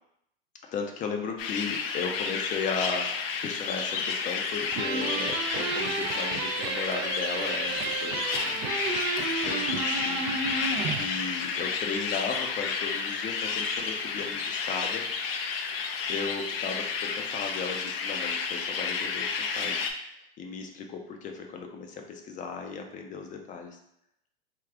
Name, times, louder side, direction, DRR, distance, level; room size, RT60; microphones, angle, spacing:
voice 1, 0.7-10.5 10.8-15.0 16.1-19.9 20.4-23.8, left 5 dB, 25° left, 4 dB, 0.5 m, -36 dB
sound 1, 1.4-19.9, left 5 dB, 75° left, 0.6 m, -31 dB
sound 2, 4.7-11.1, right 5 dB, 40° right, 0.5 m, -32 dB
3.5 x 2.4 x 3.5 m, 0.75 s
hypercardioid pair, 110°, 30 cm